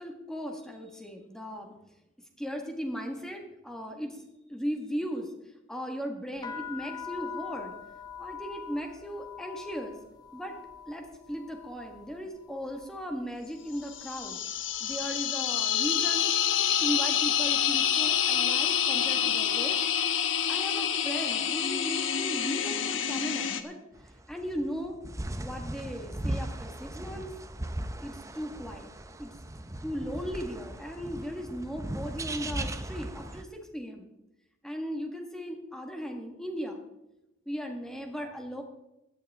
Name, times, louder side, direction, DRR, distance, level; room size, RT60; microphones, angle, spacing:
voice 1, 0.0-1.7 2.4-4.2 4.5-5.3 5.7-7.7 8.2-10.0 10.3-10.6 10.9-14.4 14.8-16.3 16.8-19.9 20.5-23.8 24.3-25.0 25.4-27.3 28.0-28.9 29.2-29.3 29.8-34.1 34.6-36.8 37.5-38.6, equal, 5° left, 2 dB, 1.7 m, -37 dB
sound 1, 6.4-14.3 14.6-15.2 15.9-16.1 16.4-17.9, left 7 dB, 20° left, 1.1 m, -44 dB
sound 2, 13.9-23.6, left 9 dB, 75° left, 1.1 m, -27 dB
sound 3, 24.0-33.4, right 1 dB, 15° right, 0.7 m, -38 dB
16.5 x 11.5 x 3.6 m, 0.92 s
head